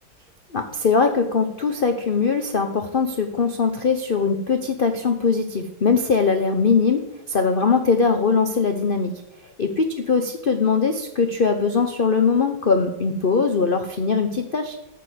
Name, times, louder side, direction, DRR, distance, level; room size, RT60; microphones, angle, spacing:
voice 1, 0.5-7.0 7.3-9.1 9.6-14.8, left 5 dB, 50° left, 5 dB, 0.6 m, -21 dB
14.0 x 5.3 x 8.0 m, 0.92 s
omnidirectional pair, 2.2 m